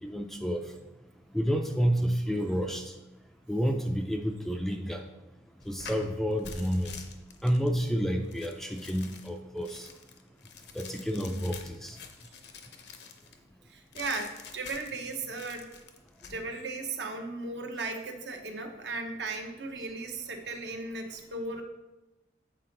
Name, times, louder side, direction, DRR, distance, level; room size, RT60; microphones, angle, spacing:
voice 1, 0.0-0.6 1.3-2.9 3.5-5.1 5.7-6.9 7.4-9.9 10.7-12.0, equal, ahead, 4 dB, 0.3 m, -30 dB
sound 1, 5.6-13.4 13.9-15.0 15.3-16.4, left 5 dB, 60° left, 0.6 m, -47 dB
voice 2, 13.7-15.6 16.3-21.6, right 3 dB, 65° right, 4 dB, 0.8 m, -36 dB
7.4 x 4.4 x 3.8 m, 1.0 s
head